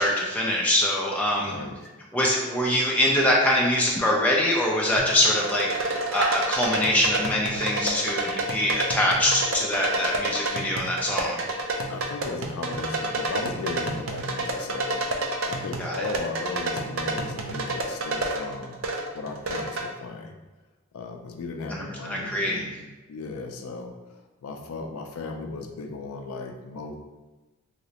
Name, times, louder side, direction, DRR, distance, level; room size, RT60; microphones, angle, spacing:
voice 1, 0.0-1.6 2.1-11.4 15.8-16.1 21.7-22.6, left 1 dB, 5° left, -3 dB, 0.4 m, -24 dB
voice 2, 1.4-1.8 2.7-2.8 11.9-18.8 19.1-20.3 20.9-23.9 24.4-27.0, left 3 dB, 85° left, 4 dB, 0.4 m, -36 dB
sound 1, 5.0-19.9, right 2 dB, 70° right, 0.4 m, -30 dB
3.1 x 2.9 x 2.8 m, 1.2 s
head